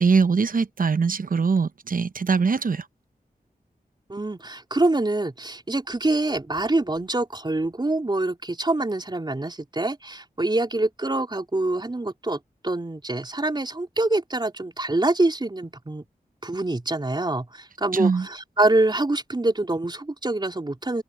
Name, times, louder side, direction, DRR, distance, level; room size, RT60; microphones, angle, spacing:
voice 1, 0.0-2.8 17.9-18.3, right 5 dB, 60° right, 0.8 m, -22 dB
voice 2, 4.1-16.1 16.4-21.0, right 2 dB, 30° right, 4.2 m, -25 dB
wide cardioid pair, 90°, 16 cm